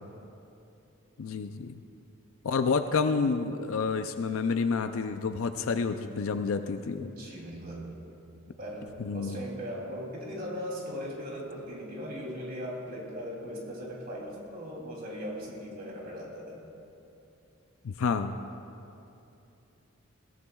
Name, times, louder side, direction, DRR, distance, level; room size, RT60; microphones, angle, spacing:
voice 1, 1.2-1.7 2.4-7.1 9.0-9.4 17.8-18.4, left 4 dB, 80° left, 8 dB, 0.5 m, -29 dB
voice 2, 7.0-7.9 8.6-16.6, equal, 45° right, -3 dB, 2.9 m, -39 dB
21.0 x 16.5 x 2.3 m, 2.8 s
head